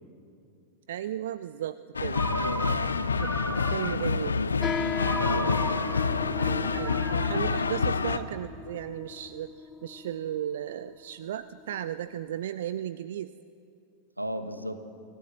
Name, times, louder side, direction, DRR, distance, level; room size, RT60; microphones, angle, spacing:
voice 1, 0.9-2.3 3.1-3.3 3.7-4.4 6.4-13.3, right 11 dB, 60° right, 15 dB, 0.4 m, -35 dB
sound 1, 1.9-8.2, left 5 dB, 75° left, 0.6 m, -28 dB
voice 2, 2.0-2.8 3.4-3.6 4.0-6.3 14.2-14.8, equal, 85° right, 9 dB, 1.3 m, -37 dB
Ringtone, 2.1-4.2 5.0-8.4, right 3 dB, 15° right, 2.0 m, -37 dB
sound 2, 4.6-12.4, left 6 dB, 20° left, 0.6 m, -38 dB
25.0 x 14.5 x 7.3 m, 2.6 s
figure-of-eight pair, 90°, 0 cm